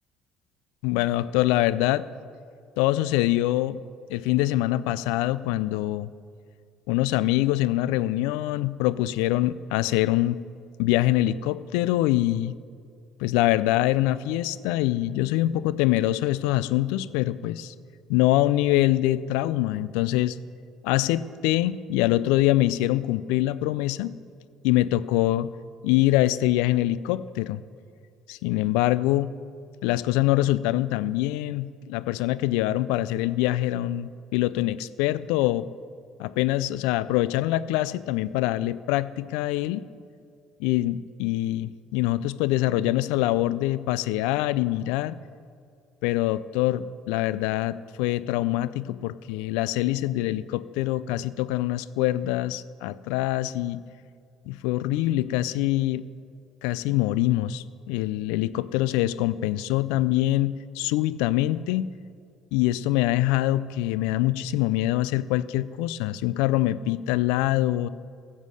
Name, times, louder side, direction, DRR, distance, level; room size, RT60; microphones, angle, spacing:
voice 1, 0.8-2.1 2.8-3.8 4.1-6.1 6.9-10.4 10.8-12.5 13.2-17.7 18.1-20.4 20.8-24.1 24.6-25.5 25.8-27.6 28.3-29.3 29.8-35.7 36.2-39.8 40.6-45.1 46.0-53.8 54.5-56.0 56.6-61.9 62.5-67.9, left 15 dB, 85° left, 17 dB, 0.4 m, -24 dB
15.5 x 7.3 x 6.4 m, 2.3 s
supercardioid pair, 85°, 0 cm